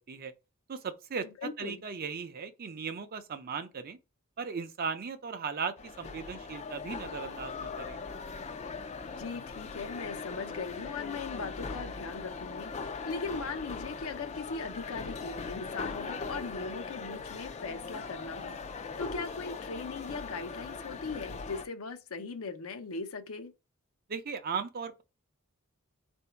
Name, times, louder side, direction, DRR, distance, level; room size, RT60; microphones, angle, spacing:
voice 1, 0.7-4.0 4.4-8.0 24.1-25.0, right 5 dB, 45° right, 0.5 m, -37 dB
voice 2, 1.4-1.8 9.2-23.5, left 4 dB, 80° left, 0.6 m, -39 dB
sound 1, 5.8-21.6, left 4 dB, 30° left, 0.4 m, -40 dB
3.8 x 2.6 x 4.4 m
head